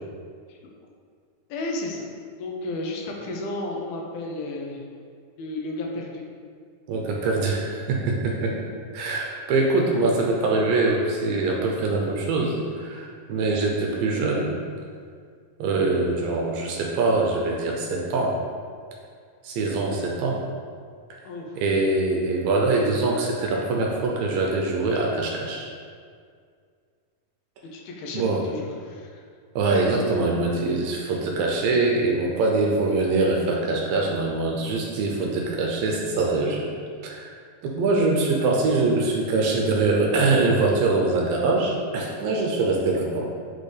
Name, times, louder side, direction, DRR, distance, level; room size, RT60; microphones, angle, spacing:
voice 1, 1.5-2.1 2.4-4.8 5.4-6.3 21.3-21.6 27.7-29.2, left 2 dB, 80° left, 0 dB, 2.6 m, -33 dB
voice 2, 6.9-8.6 8.9-14.5 15.6-18.4 19.4-20.4 21.6-25.7 28.1-28.4 29.6-36.7 37.0-37.3 37.6-43.3, right 3 dB, 80° right, 0 dB, 2.2 m, -23 dB
8.2 x 4.2 x 3.3 m, 2.1 s
omnidirectional pair, 4.3 m